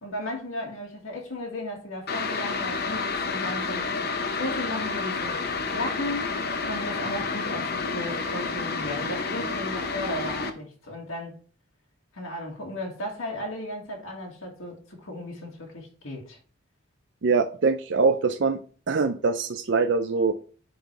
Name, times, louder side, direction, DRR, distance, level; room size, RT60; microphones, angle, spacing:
voice 1, 0.0-3.9 4.4-6.3 6.7-11.4 12.1-16.4, left 1 dB, 80° left, 1.9 m, -35 dB
sound 1, 2.1-10.5, left 4 dB, 50° left, 0.8 m, -30 dB
voice 2, 17.2-18.6 18.9-20.3, right 4 dB, 60° right, 0.5 m, -23 dB
10.0 x 4.0 x 3.2 m
head